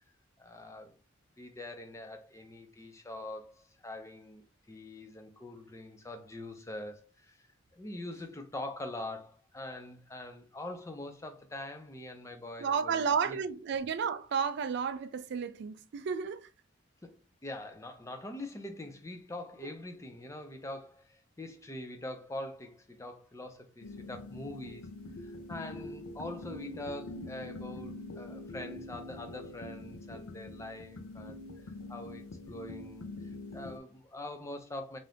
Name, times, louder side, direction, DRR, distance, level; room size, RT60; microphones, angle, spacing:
voice 1, 0.4-1.0 1.4-7.5 7.7-13.4 17.0-24.9 25.2-33.1 33.5-35.0, left 1 dB, 15° left, 0.4 m, -44 dB
voice 2, 12.6-16.5, right 6 dB, 55° right, 0.3 m, -32 dB
sound 1, 23.8-33.8, left 2 dB, 85° left, 0.5 m, -44 dB
2.7 x 2.4 x 3.3 m
head